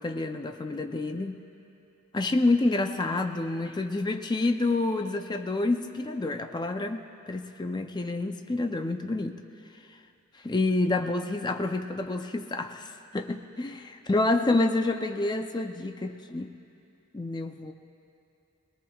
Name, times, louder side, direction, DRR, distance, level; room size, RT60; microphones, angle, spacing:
voice 1, 0.0-1.4 2.1-9.4 10.4-16.5 17.1-17.7, left 2 dB, 20° left, 5 dB, 0.5 m, -28 dB
23.0 x 19.5 x 2.3 m, 2.7 s
head